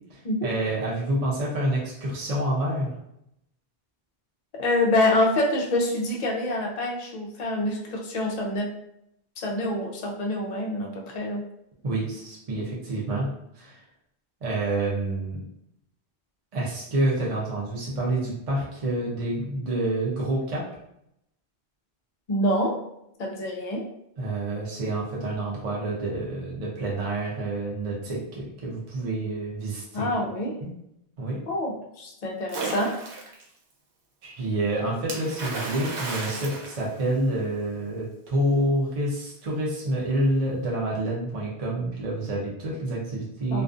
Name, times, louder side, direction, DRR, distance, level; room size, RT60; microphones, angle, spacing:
voice 1, 0.1-2.9 11.8-13.8 14.4-15.4 16.5-20.7 24.2-30.2 30.6-30.7 31.2-31.4 34.2-43.6, right 1 dB, 40° right, -4 dB, 0.6 m, -28 dB
voice 2, 4.6-8.7 9.4-11.4 22.3-22.8 23.2-23.8 29.9-30.5 31.5-33.0 43.5-43.6, left 1 dB, 50° left, 0 dB, 0.5 m, -26 dB
Splash splatter, 32.5-33.4 35.1-37.5, right 3 dB, 85° right, 0.9 m, -34 dB
2.4 x 2.4 x 2.4 m, 0.78 s
omnidirectional pair, 1.1 m